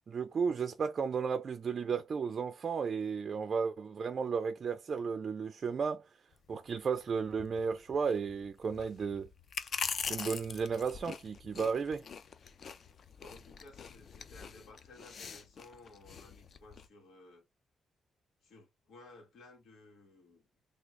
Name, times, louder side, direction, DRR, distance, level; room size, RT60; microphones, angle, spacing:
voice 1, 0.1-6.1 6.5-9.3 10.1-12.0, right 5 dB, 40° right, 0.3 m, -34 dB
sound 1, 6.3-16.9, left 6 dB, 45° left, 0.3 m, -43 dB
voice 2, 13.2-17.4 18.4-20.6, left 2 dB, 85° left, 1.4 m, -56 dB
3.5 x 2.3 x 3.1 m
wide cardioid pair, 160°, 0 cm